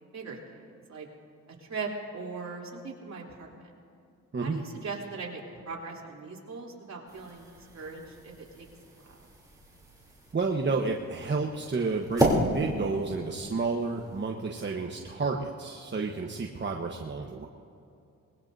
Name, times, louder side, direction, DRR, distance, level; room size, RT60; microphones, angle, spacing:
voice 1, 0.1-1.1 1.6-3.7 4.4-7.5 7.7-8.7 9.0-9.3, right 4 dB, 55° right, -3 dB, 3.5 m, -40 dB
sound 1, 7.1-14.3, right 1 dB, 10° right, 3.4 m, -33 dB
voice 2, 10.3-17.5, right 4 dB, 35° right, 1 dB, 1.2 m, -31 dB
23.5 x 20.5 x 2.7 m, 2.6 s
cardioid pair, 75°, 32 cm